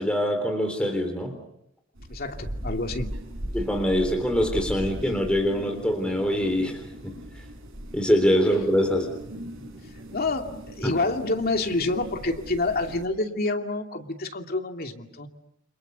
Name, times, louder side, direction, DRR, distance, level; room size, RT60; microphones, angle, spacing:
voice 1, 0.0-1.3 3.5-7.1 7.9-9.1 10.8-10.9, equal, 5° left, 4 dB, 3.7 m, -24 dB
sound 1, 2.0-13.1, equal, 75° right, 6.5 m, -39 dB
voice 2, 2.1-3.1 10.1-15.3, left 2 dB, 50° left, 4 dB, 2.6 m, -28 dB
29.5 x 27.0 x 6.9 m, 0.77 s
head